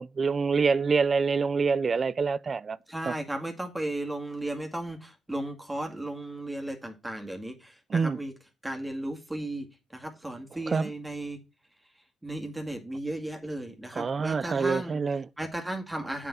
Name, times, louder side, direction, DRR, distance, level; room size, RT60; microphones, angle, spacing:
voice 1, 0.0-2.8 3.1-3.2 7.9-8.2 10.7-10.9 14.0-15.2, right 5 dB, 40° right, 0.4 m, -26 dB
voice 2, 2.9-8.3 8.6-11.4 12.2-15.0 15.4-16.3, right 1 dB, 10° right, 2.1 m, -35 dB
7.6 x 5.6 x 5.8 m
cardioid pair, 90°, 0 cm